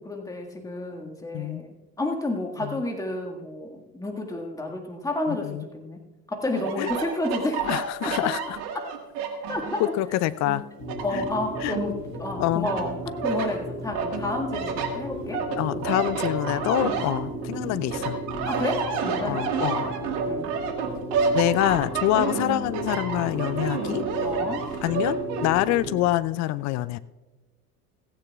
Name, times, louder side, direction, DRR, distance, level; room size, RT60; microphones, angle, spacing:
voice 1, 0.0-6.0 6.3-7.7 8.0-8.4 8.7-8.9 9.5-9.8 11.0-15.5 18.5-19.9 20.2-20.5 24.2-24.7, left 2 dB, 5° left, 1 dB, 1.8 m, -31 dB
voice 2, 5.3-5.6 6.8-6.9 7.7-8.4 9.8-10.6 11.1-11.2 11.6-11.7 12.4-12.7 15.6-18.2 19.2-19.8 21.3-24.0 24.8-27.0, left 15 dB, 35° left, 16 dB, 0.5 m, -26 dB
sound 1, 6.6-10.0 10.4-12.2 12.6-13.5 13.9-17.6 17.9-25.5, right 5 dB, 55° right, 1.7 m, -30 dB
sound 2, 10.8-26.0, right 1 dB, 80° left, 4.4 m, -35 dB
16.0 x 16.0 x 2.3 m, 1.1 s
figure-of-eight pair, 70°, 47 cm